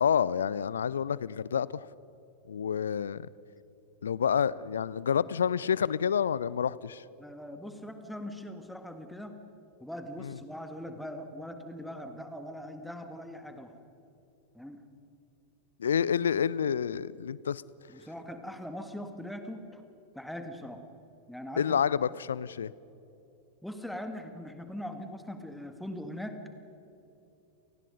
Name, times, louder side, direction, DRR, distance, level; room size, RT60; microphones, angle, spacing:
voice 1, 0.0-1.9 2.5-3.3 4.0-7.0 10.2-10.3 15.8-17.6 21.6-22.7, left 7 dB, 65° left, 21 dB, 0.5 m, -28 dB
voice 2, 7.2-9.4 9.8-13.8 14.5-14.8 17.9-19.8 20.1-20.8 21.3-21.8 23.6-26.4, equal, ahead, 7 dB, 1.9 m, -41 dB
29.5 x 18.5 x 5.2 m, 2.9 s
figure-of-eight pair, 90°, 0 cm